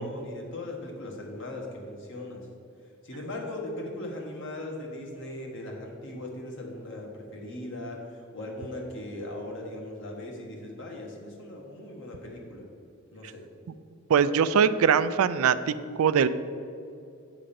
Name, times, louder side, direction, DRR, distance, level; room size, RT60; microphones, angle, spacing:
voice 1, 0.0-2.5 3.0-12.7 13.1-13.5, left 1 dB, 60° left, 0 dB, 1.4 m, -38 dB
voice 2, 14.1-16.3, right 7 dB, 85° right, 14 dB, 0.4 m, -22 dB
8.6 x 3.7 x 6.9 m, 2.5 s
head